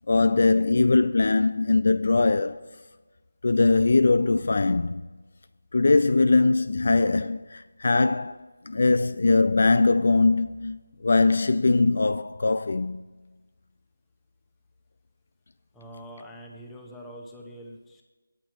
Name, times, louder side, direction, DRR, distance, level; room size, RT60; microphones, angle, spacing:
voice 1, 0.1-2.6 3.4-5.0 5.7-13.0, left 3 dB, 55° left, 0.3 m, -21 dB
voice 2, 15.7-18.0, equal, 5° left, 0.9 m, -44 dB
8.8 x 8.7 x 4.6 m
figure-of-eight pair, 160°, 0 cm